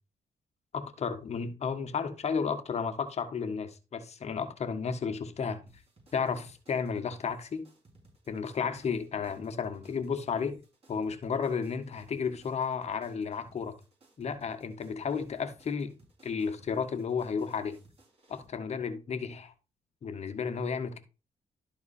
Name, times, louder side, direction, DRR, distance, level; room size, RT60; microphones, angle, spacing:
voice 1, 0.7-5.6 6.1-7.6 8.3-10.6 10.9-13.8 14.2-15.9 16.2-17.8 18.3-19.5 20.0-21.0, left 6 dB, 60° left, 1.6 m, -33 dB
sound 1, 5.7-18.5, right 2 dB, 50° right, 5.9 m, -61 dB
12.5 x 4.2 x 4.3 m
cardioid pair, 65°, 13 cm